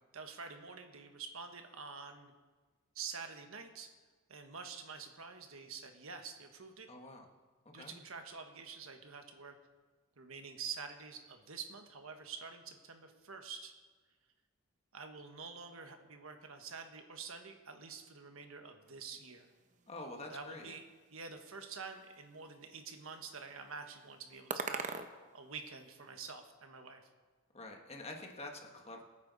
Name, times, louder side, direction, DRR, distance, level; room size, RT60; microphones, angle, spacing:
voice 1, 0.1-2.3 2.9-3.9 4.3-6.9 7.7-9.5 10.2-13.7 14.9-19.5 20.3-20.8 21.1-24.9 25.3-27.0, right 5 dB, 75° right, 6 dB, 1.3 m, -47 dB
voice 2, 6.9-7.3 7.6-7.9 19.9-20.7 27.5-29.0, left 2 dB, 30° left, 2 dB, 1.4 m, -47 dB
sound 1, 18.9-26.1, right 4 dB, 35° right, 0.7 m, -47 dB
22.0 x 9.2 x 4.1 m, 1.3 s
head